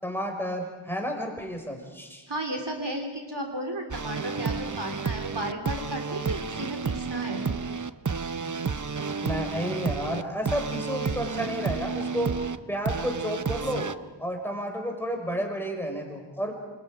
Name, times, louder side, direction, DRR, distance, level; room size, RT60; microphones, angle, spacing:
voice 1, 0.0-2.2 9.2-12.4 12.7-13.9 14.2-16.5, equal, 5° left, 2 dB, 5.8 m, -31 dB
voice 2, 2.3-7.4, right 1 dB, 60° right, 2 dB, 3.4 m, -34 dB
sound 1, 3.9-14.0, right 5 dB, 40° right, 0.8 m, -31 dB
28.0 x 26.5 x 5.1 m, 1.2 s
wide cardioid pair, 55°, 47 cm